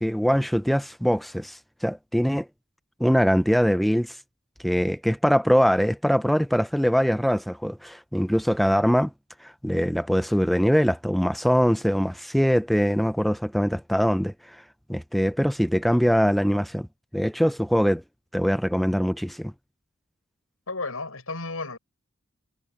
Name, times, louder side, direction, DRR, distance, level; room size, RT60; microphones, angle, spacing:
voice 1, 0.0-2.5 3.0-4.2 4.6-9.1 9.4-14.6 14.9-16.9 17.1-18.0 18.3-19.5, equal, ahead, 0.3 m, -22 dB
voice 2, 20.7-21.8, left 3 dB, 85° left, 6.4 m, -32 dB
head